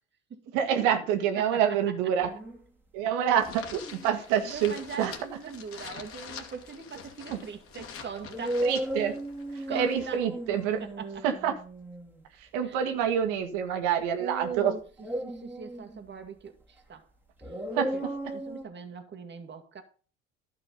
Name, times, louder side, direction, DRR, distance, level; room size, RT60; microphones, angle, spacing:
voice 1, 0.5-2.3 2.9-5.1 7.3-7.4 8.6-9.2 9.5-10.8 11.2-11.5 12.4-14.7 17.7-18.1, right 9 dB, 75° right, 1.9 m, -27 dB
sound 1, 2.3-2.6 3.5-4.1 7.1-7.2 8.3-12.2 15.0-16.3 17.4-18.6, right 1 dB, 5° right, 2.9 m, -35 dB
sound 2, 3.3-10.2, left 6 dB, 45° left, 2.6 m, -46 dB
voice 2, 4.4-8.6 9.7-10.2 10.8-11.2 12.6-12.8 14.2-14.8 15.2-17.1 17.4-17.5 17.9-18.0 18.3-19.8, right 6 dB, 35° right, 2.2 m, -41 dB
11.5 x 6.0 x 5.5 m
hypercardioid pair, 80°, 32 cm